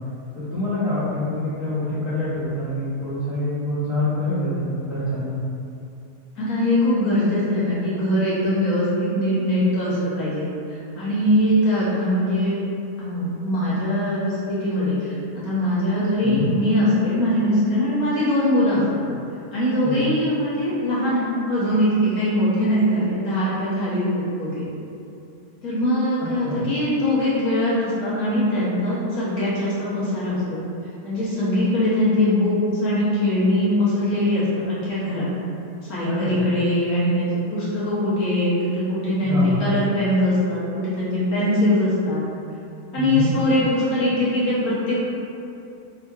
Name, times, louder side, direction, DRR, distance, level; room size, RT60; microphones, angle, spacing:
voice 1, 0.3-5.4 16.2-16.5 19.8-20.0 26.2-26.6 36.0-36.4 39.2-39.7 42.9-43.3, left 1 dB, 35° left, -16 dB, 1.2 m, -26 dB
voice 2, 6.4-10.5 10.9-12.6 13.0-15.1 15.4-19.0 19.5-24.7 25.6-30.6 31.0-35.3 35.9-42.2 42.9-45.0, left 1 dB, 65° left, -10 dB, 1.3 m, -22 dB
3.5 x 2.8 x 2.3 m, 2.6 s
omnidirectional pair, 1.7 m